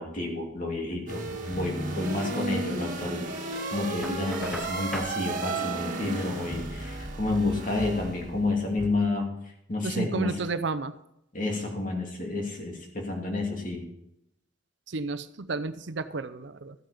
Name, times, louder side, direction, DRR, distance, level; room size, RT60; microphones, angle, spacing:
voice 1, 0.0-9.3 9.7-10.3 11.3-13.8, left 2 dB, 45° left, 0 dB, 2.7 m, -30 dB
sound 1, 1.1-8.9, right 2 dB, 45° right, 1.9 m, -34 dB
Knock, 4.0-5.2, equal, ahead, 0.7 m, -40 dB
voice 2, 9.8-10.9 14.9-16.7, right 3 dB, 65° right, 13 dB, 0.7 m, -32 dB
13.5 x 9.2 x 5.1 m, 0.81 s
head